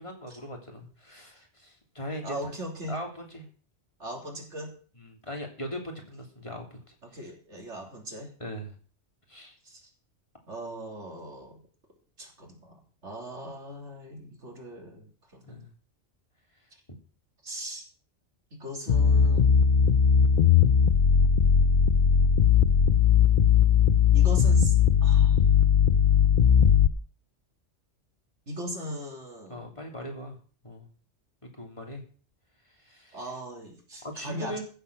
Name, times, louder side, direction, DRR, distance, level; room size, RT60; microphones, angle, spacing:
voice 1, 0.0-2.4 2.9-3.5 5.2-6.9 8.4-8.7 9.3-9.5 15.5-15.7 29.5-30.4 30.6-30.9 31.4-32.0 32.8-33.2 34.0-34.6, equal, 25° left, 1 dB, 3.2 m, -39 dB
voice 2, 2.2-3.0 4.0-4.8 7.0-8.3 9.6-9.9 10.5-11.6 12.2-15.7 17.4-17.8 18.5-19.8 24.1-24.7 25.0-25.5 28.5-29.8 33.1-34.6, equal, 85° right, 1 dB, 3.7 m, -39 dB
a minor bassline melody, 18.9-26.9, left 7 dB, 50° left, 0.8 m, -19 dB
15.0 x 7.6 x 6.9 m, 0.40 s
omnidirectional pair, 1.2 m